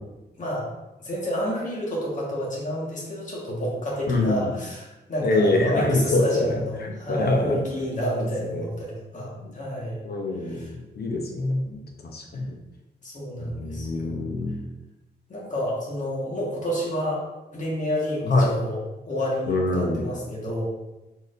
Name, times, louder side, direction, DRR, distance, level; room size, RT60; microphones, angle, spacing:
voice 1, 0.4-0.7 1.0-10.0 10.4-10.7 13.0-14.2 15.3-17.2 17.5-18.8 19.0-20.6, equal, 45° left, -4 dB, 1.5 m, -29 dB
voice 2, 4.1-4.5 5.2-7.6 8.5-8.7 9.4-9.5 10.0-12.5 13.5-14.6 18.3-18.5 19.5-20.1, left 2 dB, 65° left, 2 dB, 0.7 m, -25 dB
4.8 x 4.2 x 2.5 m, 1.0 s
wide cardioid pair, 140°, 18 cm